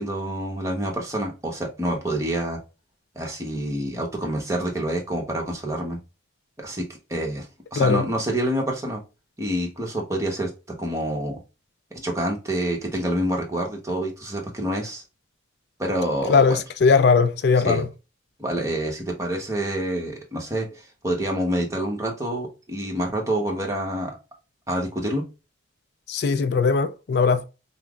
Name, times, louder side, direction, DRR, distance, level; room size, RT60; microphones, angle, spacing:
voice 1, 0.0-2.6 3.1-6.0 6.6-9.0 9.4-11.4 11.9-15.0 15.8-16.6 17.6-17.8 18.4-24.2 24.7-25.3, right 1 dB, 15° right, 0.9 m, -27 dB
voice 2, 16.3-17.9 26.1-27.4, left 5 dB, 60° left, 0.3 m, -19 dB
5.4 x 2.0 x 2.3 m
head